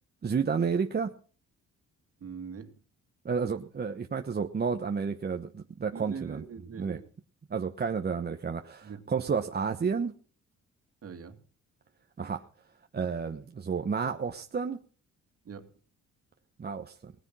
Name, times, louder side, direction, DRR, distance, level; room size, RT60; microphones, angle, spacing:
voice 1, 0.2-1.1 3.2-6.4 6.8-7.0 7.5-10.1 12.2-12.4 12.9-14.8 16.6-17.1, right 6 dB, 35° right, 5 dB, 1.1 m, -31 dB
voice 2, 2.2-2.8 5.9-7.1 8.8-9.1 11.0-11.4 15.4-15.7, right 6 dB, 50° right, 7 dB, 2.5 m, -42 dB
19.0 x 9.8 x 6.3 m, 0.42 s
cardioid pair, 90°, 30 cm